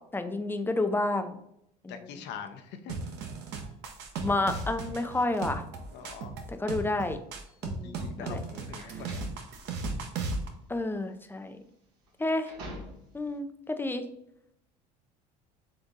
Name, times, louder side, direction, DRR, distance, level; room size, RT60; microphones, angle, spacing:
voice 1, 0.1-1.4 1.8-2.2 4.2-5.6 6.5-7.2 7.6-8.4 10.7-11.6 12.2-12.5 13.1-14.0, left 2 dB, 10° left, 8 dB, 0.5 m, -30 dB
voice 2, 1.9-2.9 5.9-6.3 7.8-9.2, left 7 dB, 60° left, 7 dB, 0.7 m, -43 dB
sound 1, 2.9-10.5, right 4 dB, 55° right, 0.8 m, -36 dB
sound 2, 7.4-13.4, equal, 80° right, 1.3 m, -48 dB
4.0 x 3.4 x 3.8 m, 0.77 s
hypercardioid pair, 85°, 21 cm